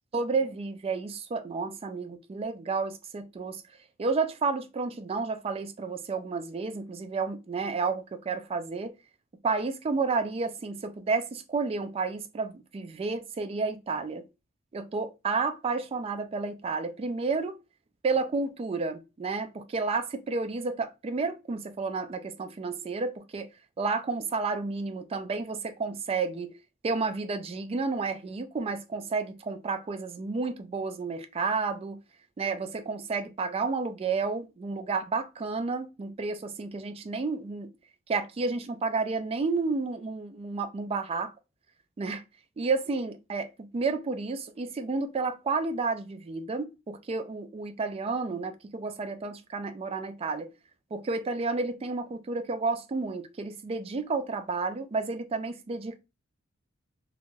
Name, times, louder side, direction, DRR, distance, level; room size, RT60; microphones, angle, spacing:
voice 1, 0.1-3.6 4.0-8.9 9.4-14.2 14.7-17.5 18.0-23.5 23.8-26.5 26.8-32.0 32.4-37.7 38.1-41.3 42.0-42.2 42.6-43.5 43.7-50.5 50.9-56.0, right 4 dB, 30° right, 0.3 m, -31 dB
2.5 x 2.2 x 3.1 m
head